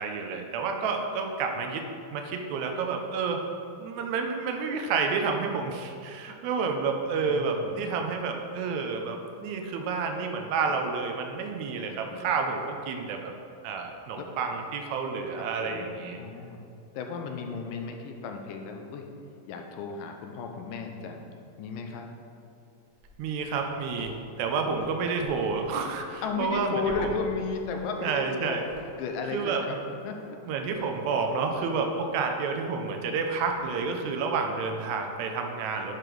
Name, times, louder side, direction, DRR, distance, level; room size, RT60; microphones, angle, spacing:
voice 1, 0.0-1.8 2.1-3.4 3.8-13.3 13.6-16.2 23.2-24.1 24.4-27.1 28.0-28.6 29.3-29.6 30.5-35.9, right 5 dB, 80° right, 3 dB, 1.7 m, -30 dB
voice 2, 7.3-8.0 11.8-12.3 14.2-14.3 15.4-15.9 16.2-16.6 16.9-19.1 19.4-21.3 21.6-22.1 24.6-24.9 26.2-28.7 29.0-30.4, left 5 dB, 80° left, 4 dB, 2.3 m, -35 dB
sound 1, 22.8-24.0 24.5-25.7 26.0-27.5 27.9-28.1 28.4-28.9 29.1-29.2 29.7-30.3 30.6-31.0 31.3-31.6, equal, 25° right, 1.9 m, -48 dB
9.7 x 5.1 x 4.6 m, 2.5 s
omnidirectional pair, 4.0 m